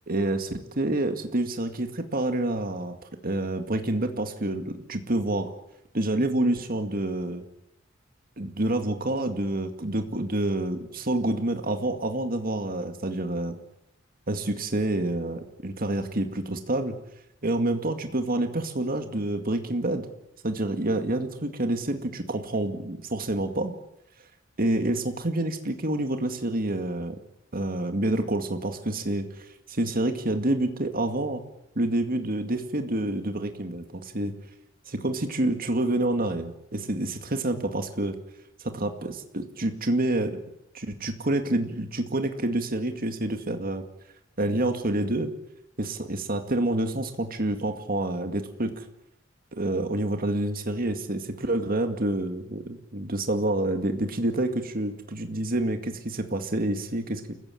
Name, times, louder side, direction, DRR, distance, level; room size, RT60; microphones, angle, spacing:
voice 1, 0.1-3.0 3.2-5.5 5.9-7.5 8.4-13.6 14.3-17.0 17.4-20.1 20.4-23.7 24.6-27.2 27.5-31.4 31.8-34.3 34.9-38.2 38.6-40.4 40.7-43.8 44.4-45.3 45.8-48.9 49.5-57.3, right 1 dB, 50° right, 7 dB, 2.1 m, -28 dB
28.5 x 15.5 x 8.7 m, 0.80 s
head